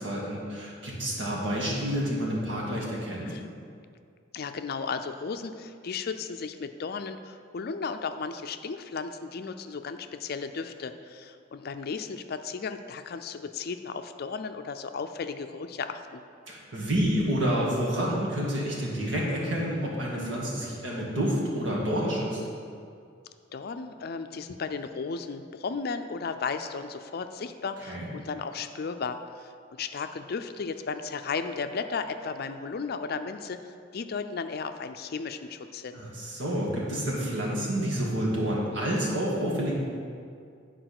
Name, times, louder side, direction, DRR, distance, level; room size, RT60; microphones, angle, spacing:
voice 1, 0.0-3.3 16.5-22.4 27.9-28.1 35.9-39.7, equal, 70° right, -4 dB, 2.1 m, -29 dB
voice 2, 4.3-16.2 23.5-36.0, left 5 dB, 55° left, 8 dB, 0.4 m, -35 dB
10.0 x 4.7 x 6.0 m, 2.3 s
head